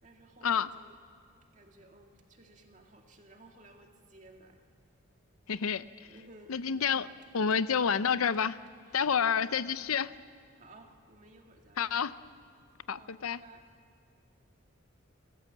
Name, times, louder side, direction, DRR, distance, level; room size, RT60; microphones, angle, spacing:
voice 1, 0.0-0.9 1.5-4.6 6.1-6.9 8.9-9.3 10.6-11.9 13.0-13.6, right 2 dB, 35° right, 2 dB, 2.1 m, -56 dB
voice 2, 5.5-5.8 6.5-7.1 7.3-8.6 8.9-10.1 11.8-12.1 12.9-13.4, left 7 dB, 85° left, 15 dB, 0.6 m, -29 dB
29.5 x 14.0 x 7.4 m, 2.4 s
head